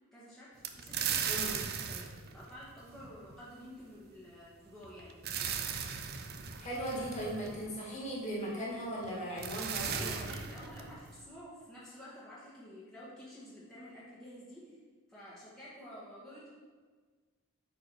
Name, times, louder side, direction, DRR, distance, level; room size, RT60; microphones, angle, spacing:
voice 1, 0.1-5.5 9.7-14.8 15.1-16.5, equal, 5° left, -10 dB, 1.6 m, -50 dB
sound 1, 0.6-3.3 4.8-7.9 9.0-9.1 9.4-11.2, right 7 dB, 45° right, 0.5 m, -37 dB
voice 2, 6.6-10.1, equal, 30° left, -5 dB, 2.0 m, -38 dB
8.3 x 4.8 x 4.7 m, 1.5 s
head